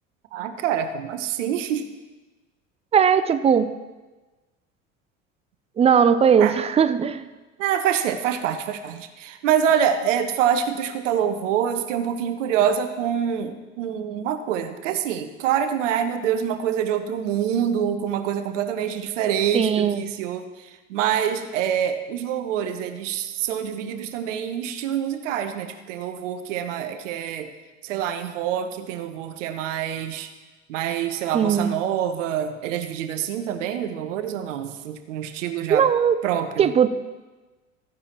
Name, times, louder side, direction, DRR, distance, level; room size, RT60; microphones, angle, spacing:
voice 1, 0.3-1.9 6.4-6.5 7.6-27.5 27.8-30.3 30.7-35.9 36.2-36.7, right 9 dB, 65° right, 9 dB, 1.0 m, -26 dB
voice 2, 2.9-3.7 5.8-7.3 19.5-20.1 31.3-31.7 35.7-36.2 36.6-36.9, right 7 dB, 15° right, 13 dB, 0.4 m, -19 dB
13.5 x 9.7 x 3.0 m, 1.2 s
figure-of-eight pair, 70°, 39 cm